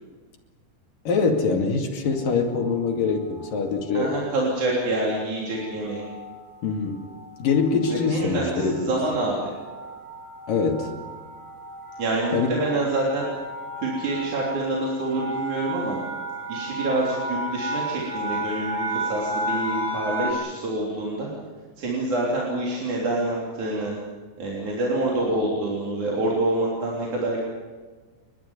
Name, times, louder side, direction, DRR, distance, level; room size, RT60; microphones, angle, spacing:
voice 1, 1.1-4.2 6.6-7.1 7.4-8.9 10.5-10.9 12.3-12.5, left 4 dB, 70° left, 3 dB, 4.1 m, -24 dB
sound 1, 2.2-2.7 3.4-3.8 4.1-4.3 4.5-20.3, right 1 dB, 25° right, 3.4 m, -34 dB
voice 2, 3.9-6.0 7.9-9.4 12.0-13.3 13.8-16.0 16.5-21.3 21.8-24.0 24.4-27.5, right 2 dB, 55° right, -4 dB, 4.8 m, -26 dB
29.5 x 12.5 x 9.8 m, 1.4 s
omnidirectional pair, 4.1 m